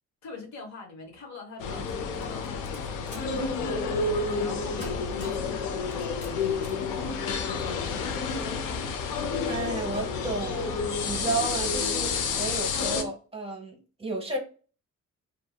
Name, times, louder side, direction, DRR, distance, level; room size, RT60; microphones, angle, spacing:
voice 1, 0.2-8.3, left 3 dB, 65° left, 2 dB, 0.9 m, -43 dB
sound 1, 1.6-13.0, left 5 dB, 90° left, 0.5 m, -30 dB
sound 2, 2.2-3.4 4.3-4.5 4.8-5.5 5.9-6.9, left 1 dB, 35° left, 1.1 m, -45 dB
voice 2, 9.2-14.4, right 3 dB, 20° right, 1 dB, 0.8 m, -33 dB
2.6 x 2.6 x 2.2 m, 0.37 s
cardioid pair, 90°, 30 cm